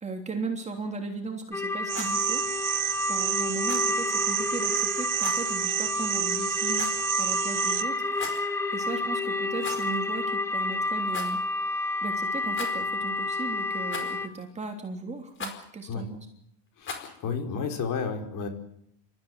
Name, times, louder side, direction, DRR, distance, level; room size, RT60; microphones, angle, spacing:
voice 1, 0.0-2.4 2.7-2.8 3.1-6.9 7.2-8.1 8.7-11.4 12.0-16.3, right 4 dB, 15° right, 3 dB, 3.3 m, -36 dB
sound 1, 1.5-14.3, left 2 dB, 5° left, 1.0 m, -30 dB
Rattle, 1.8-2.2 3.6-3.9 5.2-5.5 6.7-7.1 8.1-8.5 9.6-10.0 10.3-10.4 11.1-11.4 12.5-13.0 13.9-14.3 15.4-15.7 16.8-17.2, left 4 dB, 25° left, 4.6 m, -38 dB
sound 2, 1.9-7.8, right 15 dB, 40° right, 1.3 m, -30 dB
voice 2, 16.8-18.5, left 5 dB, 40° left, 5 dB, 5.0 m, -32 dB
28.0 x 14.5 x 10.0 m, 0.73 s
cardioid pair, 155°, 48 cm